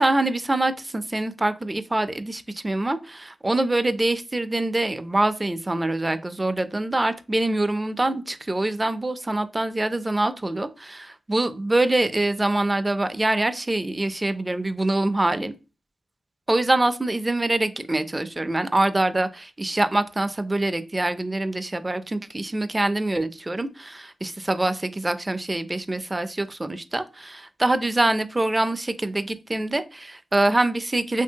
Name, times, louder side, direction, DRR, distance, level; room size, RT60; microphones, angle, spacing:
voice 1, 0.0-15.5 16.5-31.2, right 2 dB, 25° right, 0.4 m, -24 dB
2.8 x 2.6 x 2.7 m
cardioid pair, 45°, 0 cm